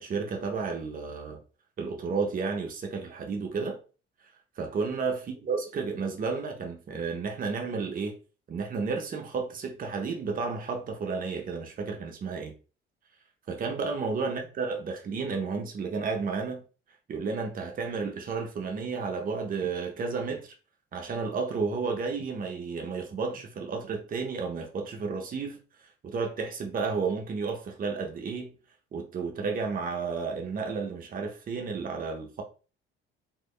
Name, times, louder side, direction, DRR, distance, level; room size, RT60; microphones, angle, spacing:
voice 1, 0.0-1.4 1.8-3.8 4.6-8.2 8.5-12.5 13.5-16.6 17.1-20.5 20.9-28.6 28.9-32.4, right 4 dB, 30° right, 0.7 m, -32 dB
3.7 x 2.9 x 2.2 m
figure-of-eight pair, 50°, 30 cm